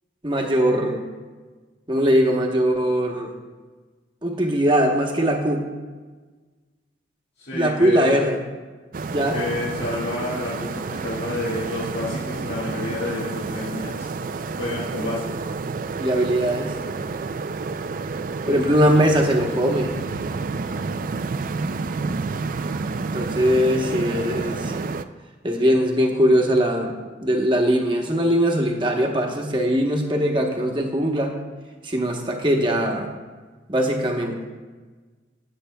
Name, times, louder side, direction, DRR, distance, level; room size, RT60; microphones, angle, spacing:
voice 1, 0.2-1.0 1.9-3.3 4.2-5.7 7.5-8.4 9.1-9.4 15.0-15.1 16.0-16.7 18.5-20.0 23.1-24.8 25.4-31.3 31.8-33.1 33.7-34.4, equal, 25° right, 2 dB, 1.0 m, -21 dB
voice 2, 7.4-8.2 9.3-14.1 14.6-15.4 18.4-18.7, left 2 dB, 60° left, -10 dB, 2.0 m, -30 dB
sound 1, 8.9-25.0, right 4 dB, 45° right, 0.3 m, -29 dB
16.5 x 8.0 x 2.3 m, 1.4 s
head